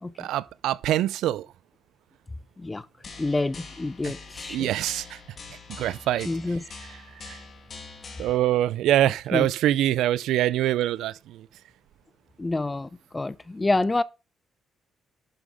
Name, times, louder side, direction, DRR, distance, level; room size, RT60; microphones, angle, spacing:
voice 1, 0.2-1.5 4.0-4.1 4.5-5.2 5.8-6.3 6.9-7.4 8.2-11.5, right 13 dB, 85° right, 0.5 m, -24 dB
sound 1, 3.0-8.4, left 4 dB, 45° left, 2.5 m, -44 dB
voice 2, 3.2-4.7 6.3-6.6 9.3-9.5 12.4-14.0, left 2 dB, 20° left, 0.5 m, -27 dB
11.5 x 5.6 x 4.9 m
cardioid pair, 90°, 0 cm